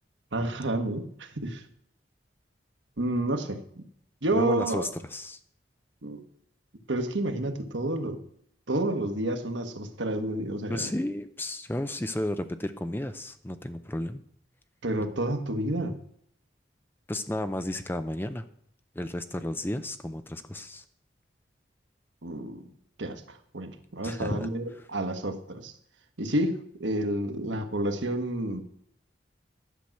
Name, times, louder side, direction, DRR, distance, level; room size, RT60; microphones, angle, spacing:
voice 1, 0.3-1.6 3.0-3.8 4.2-4.9 6.0-6.2 6.9-8.2 8.7-10.9 14.8-15.9 22.2-22.6 23.0-25.7 26.2-28.6, right 1 dB, 90° right, 7 dB, 1.3 m, -30 dB
voice 2, 4.3-5.4 10.7-14.2 17.1-18.5 18.9-20.8 24.0-24.5, left 1 dB, 10° left, 10 dB, 0.5 m, -33 dB
11.5 x 5.9 x 7.6 m, 0.66 s
head